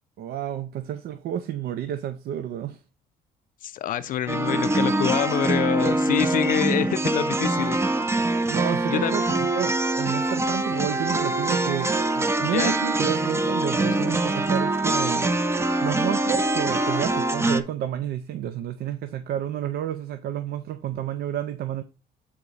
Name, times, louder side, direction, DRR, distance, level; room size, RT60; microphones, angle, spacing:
voice 1, 0.2-2.8 4.0-4.1 8.5-11.9 12.1-15.3 15.8-21.8, right 10 dB, 65° right, 0.5 m, -30 dB
voice 2, 3.6-7.8 8.9-9.2 12.4-12.8, left 11 dB, 55° left, 0.4 m, -26 dB
sound 1, 4.3-17.6, right 2 dB, 15° right, 0.6 m, -24 dB
8.3 x 3.6 x 4.0 m
cardioid pair, 110°, 17 cm